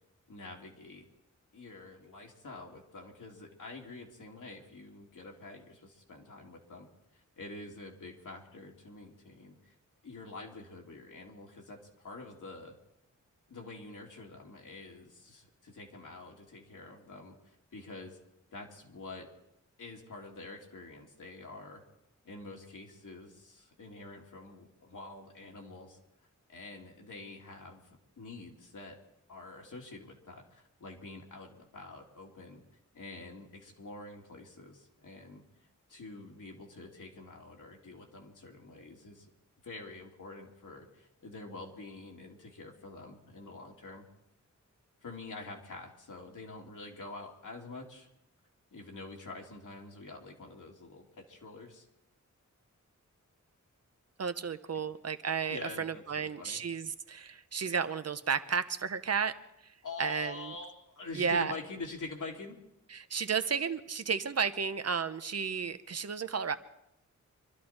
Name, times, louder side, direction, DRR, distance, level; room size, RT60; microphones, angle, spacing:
voice 1, 0.3-1.1 1.5-6.9 7.1-9.7 10.0-12.8 13.5-18.2 18.5-19.3 19.8-21.8 22.2-26.0 26.5-27.8 28.2-29.0 29.3-32.6 32.9-35.4 35.9-39.3 39.6-44.1 45.0-48.1 48.7-51.9 54.7-54.9 55.5-56.6 59.8-62.6, left 3 dB, 80° left, -1 dB, 2.8 m, -46 dB
voice 2, 54.2-59.4 60.0-60.5 61.1-61.5 62.9-66.5, right 6 dB, 55° right, 11 dB, 0.8 m, -33 dB
25.5 x 12.5 x 4.4 m, 0.83 s
wide cardioid pair, 100°, 31 cm